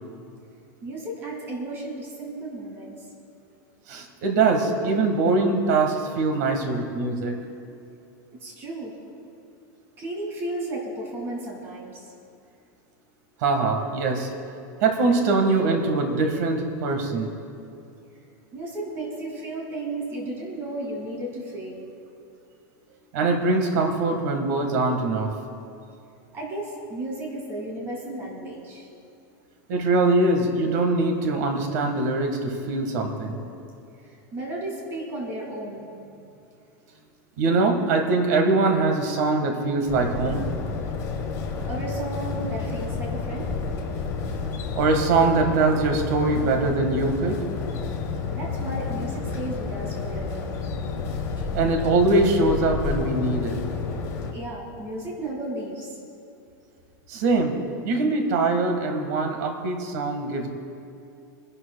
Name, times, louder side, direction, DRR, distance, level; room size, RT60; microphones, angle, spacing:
voice 1, 0.8-2.9 8.4-8.9 10.0-12.0 18.5-21.9 26.3-28.9 34.0-35.9 41.7-43.5 48.3-50.5 51.4-51.5 54.3-56.0, right 1 dB, 20° right, -1 dB, 2.2 m, -34 dB
voice 2, 3.9-7.4 13.4-14.3 14.8-17.3 23.1-25.3 29.7-33.4 37.4-40.4 44.7-47.4 51.5-53.6 57.1-57.5 57.8-60.5, right 3 dB, 55° right, 4 dB, 1.6 m, -22 dB
sound 1, 39.9-54.3, left 4 dB, 30° left, 1.2 m, -30 dB
29.0 x 11.5 x 2.3 m, 2.6 s
supercardioid pair, 175°, 11 cm